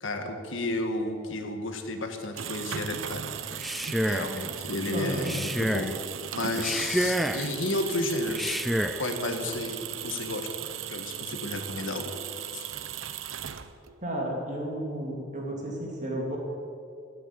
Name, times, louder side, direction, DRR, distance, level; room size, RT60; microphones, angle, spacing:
voice 1, 0.0-3.2 4.1-5.9 6.3-8.6 9.0-10.5 10.9-12.1 12.5-12.7, left 2 dB, 80° left, 6 dB, 1.6 m, -32 dB
sound 1, 2.1-14.0, right 9 dB, 85° right, 0.7 m, -37 dB
Male speech man speaking, 3.5-4.4 5.2-5.9 6.5-7.5 8.3-9.0, equal, ahead, 0.4 m, -29 dB
voice 2, 4.9-5.3 14.0-16.4, right 1 dB, 40° right, -1 dB, 2.9 m, -32 dB
12.0 x 9.4 x 8.8 m, 2.4 s
head